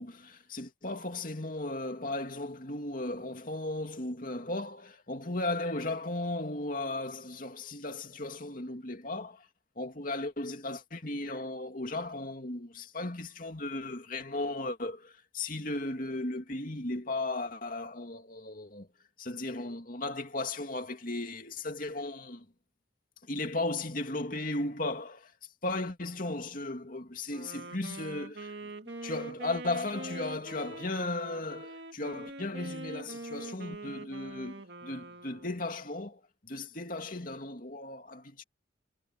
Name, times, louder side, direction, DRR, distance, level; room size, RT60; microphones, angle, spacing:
voice 1, 0.0-9.5 9.8-18.9 19.2-22.5 23.2-28.5 29.0-38.4, left 2 dB, 45° left, 2.6 m, -36 dB
Wind instrument woodwind instrument, 27.3-35.9, right 2 dB, 60° right, 2.3 m, -44 dB
head